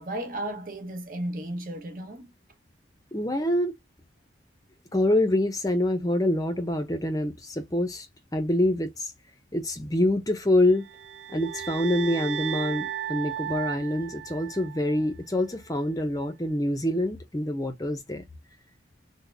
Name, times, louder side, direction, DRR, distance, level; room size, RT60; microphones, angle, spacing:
voice 1, 0.0-2.3, right 1 dB, 45° right, 0.9 m, -34 dB
voice 2, 3.1-3.7 4.9-8.1 8.3-9.1 9.5-10.9 11.3-18.2, left 1 dB, 20° left, 0.5 m, -26 dB
sound 1, 10.8-15.1, right 9 dB, 75° right, 0.4 m, -35 dB
3.8 x 2.1 x 3.3 m
head